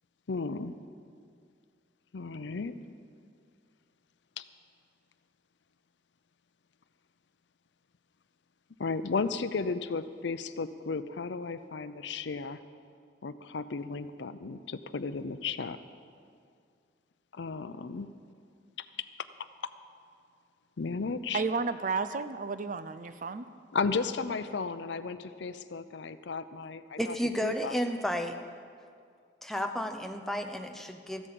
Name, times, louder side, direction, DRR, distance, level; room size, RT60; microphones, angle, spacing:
voice 1, 0.3-0.7 2.1-2.8 4.4-4.5 8.8-12.6 13.2-15.8 17.3-18.1 18.8-19.1 19.6-19.7 20.8-21.4 23.7-27.2 27.4-27.8, left 4 dB, 80° left, 12 dB, 0.6 m, -34 dB
voice 2, 21.3-23.5, right 4 dB, 45° right, 12 dB, 0.5 m, -32 dB
voice 3, 27.0-28.4 29.4-31.3, equal, ahead, 5 dB, 0.7 m, -32 dB
14.5 x 8.0 x 7.6 m, 2.2 s
head